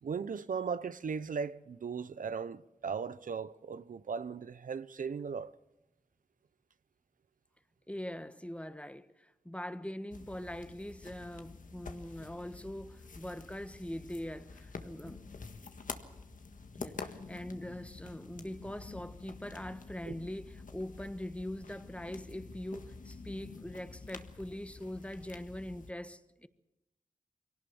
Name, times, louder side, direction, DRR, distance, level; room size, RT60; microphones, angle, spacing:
voice 1, 0.0-5.5 20.1-20.2, right 6 dB, 80° right, 0.7 m, -37 dB
voice 2, 7.9-15.3 16.7-26.5, left 1 dB, 10° left, 1.4 m, -42 dB
sound 1, 10.1-25.9, left 4 dB, 75° left, 1.6 m, -48 dB
23.0 x 18.0 x 7.0 m
cardioid pair, 50°, 14 cm